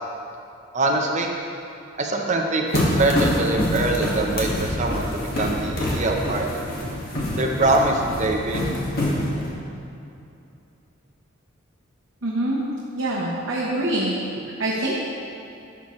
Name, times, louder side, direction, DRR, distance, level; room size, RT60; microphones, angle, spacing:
voice 1, 0.7-1.3 2.0-4.5 4.8-6.6 7.4-8.6, right 2 dB, 35° right, 1 dB, 0.8 m, -23 dB
sound 1, 2.7-9.5, left 1 dB, 50° left, 1.8 m, -25 dB
voice 2, 12.2-12.6 12.9-14.2 14.5-14.9, right 1 dB, 70° right, -6 dB, 1.2 m, -25 dB
11.5 x 7.1 x 3.2 m, 2.7 s
head